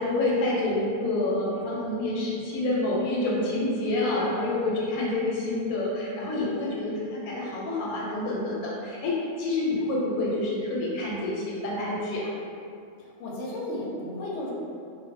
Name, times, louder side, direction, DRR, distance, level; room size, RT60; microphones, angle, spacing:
voice 1, 0.0-12.3, left 2 dB, 85° left, -4 dB, 1.1 m, -28 dB
voice 2, 13.0-14.5, left 1 dB, 65° left, -5 dB, 0.8 m, -34 dB
2.5 x 2.1 x 2.5 m, 2.4 s
omnidirectional pair, 1.5 m